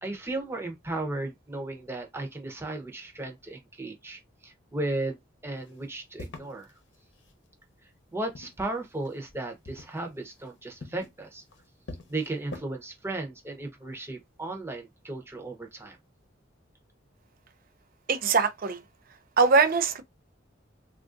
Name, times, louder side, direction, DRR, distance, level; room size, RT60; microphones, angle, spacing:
voice 1, 0.0-5.2 5.4-6.7 8.1-11.4 12.1-16.0, right 2 dB, 15° right, 0.8 m, -35 dB
sound 1, 5.6-7.5 8.1-9.4 9.6-12.6, left 2 dB, 70° left, 0.8 m, -46 dB
voice 2, 18.1-18.8 19.4-20.0, right 4 dB, 50° right, 0.5 m, -22 dB
3.4 x 2.5 x 2.5 m
head